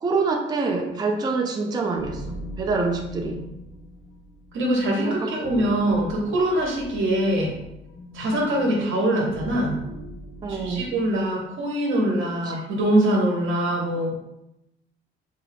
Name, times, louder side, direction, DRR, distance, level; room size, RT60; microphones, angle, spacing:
voice 1, 0.0-3.4 5.0-5.4 10.4-10.8 12.5-12.7, right 4 dB, 20° right, 2 dB, 0.3 m, -26 dB
sound 1, 2.0-11.1, left 2 dB, 60° left, 0.6 m, -40 dB
voice 2, 4.5-7.5 8.1-9.8 10.5-14.2, right 1 dB, 75° right, -1 dB, 0.8 m, -23 dB
3.8 x 2.3 x 3.3 m, 0.87 s
cardioid pair, 150°, 21 cm